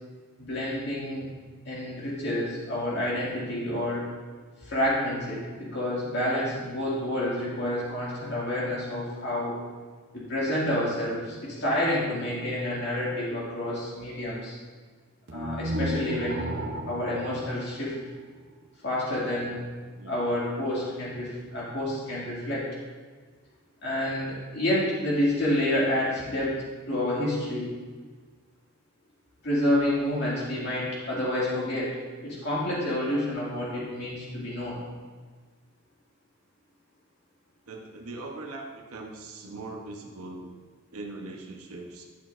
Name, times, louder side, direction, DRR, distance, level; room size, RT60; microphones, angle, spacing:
voice 1, 0.4-1.3 1.7-4.1 4.6-9.6 10.1-14.6 15.3-16.6 16.9-18.0 18.8-19.6 20.1-22.7 23.8-26.6 26.9-27.7 29.4-34.8, left 1 dB, 50° left, -7 dB, 2.1 m, -29 dB
sound 1, 15.3-18.4, equal, 55° right, 0.7 m, -34 dB
voice 2, 37.7-40.5 40.9-42.0, right 2 dB, 85° right, 1 dB, 0.9 m, -40 dB
11.5 x 6.1 x 2.5 m, 1.5 s
head